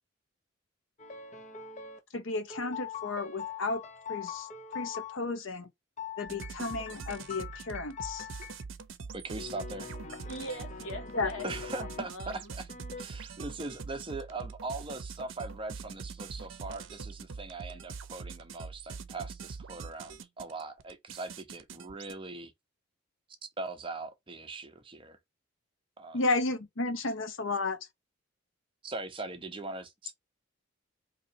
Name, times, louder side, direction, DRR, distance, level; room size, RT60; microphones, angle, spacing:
sound 1, 1.0-2.0 2.5-5.2 6.0-8.6 9.4-12.0 12.7-13.0, left 8 dB, 35° left, 0.7 m, -42 dB
voice 1, 2.1-3.8 4.1-4.5 4.7-5.7 6.2-8.3 11.1-11.3 26.1-27.8, left 3 dB, 70° left, 0.7 m, -33 dB
sound 2, 6.3-22.1, right 5 dB, 70° right, 0.6 m, -43 dB
voice 2, 9.1-9.9 11.4-12.7 13.0-22.5 23.6-25.2 26.0-26.2 28.8-30.1, right 3 dB, 25° right, 0.7 m, -40 dB
voice 3, 10.3-12.5, left 1 dB, 85° left, 1.5 m, -41 dB
4.0 x 2.8 x 2.7 m
head